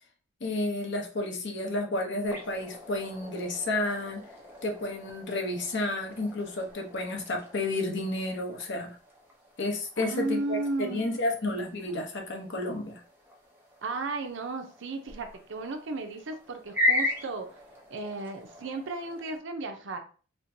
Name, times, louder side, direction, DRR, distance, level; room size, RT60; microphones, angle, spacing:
voice 1, 0.4-4.2 4.6-9.0 9.6-13.0, left 2 dB, 60° left, 2 dB, 0.8 m, -31 dB
sound 1, 2.2-19.4, left 1 dB, 10° right, 0.7 m, -38 dB
voice 2, 10.0-11.2 13.8-17.5 17.9-20.0, right 3 dB, 65° right, 5 dB, 0.6 m, -34 dB
4.3 x 2.1 x 2.7 m, 0.39 s
head